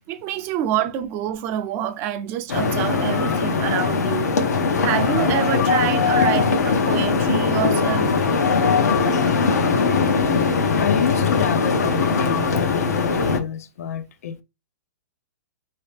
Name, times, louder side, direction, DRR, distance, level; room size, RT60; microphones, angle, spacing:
voice 1, 0.1-4.3 4.8-8.1 10.3-10.4, right 11 dB, 25° right, 0.4 m, -27 dB
sound 1, 2.5-13.4, left 4 dB, 90° left, 0.9 m, -20 dB
voice 2, 10.7-14.4, left 8 dB, 65° left, 0.5 m, -29 dB
3.3 x 2.9 x 3.3 m
hypercardioid pair, 160°, 9 cm